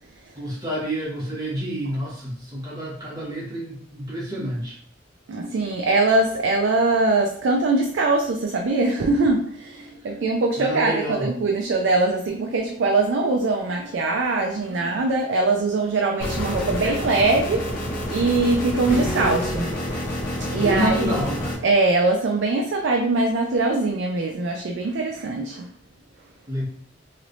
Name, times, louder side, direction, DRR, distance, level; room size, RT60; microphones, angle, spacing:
voice 1, 0.3-4.8 10.6-11.3 20.6-21.6 26.5-26.7, equal, 20° right, -7 dB, 1.2 m, -28 dB
voice 2, 5.3-20.1 20.5-21.1 21.6-25.7, right 3 dB, 70° right, 2 dB, 0.4 m, -22 dB
sound 1, 16.2-21.5, equal, 45° left, 0.8 m, -28 dB
3.1 x 3.0 x 2.6 m, 0.62 s
head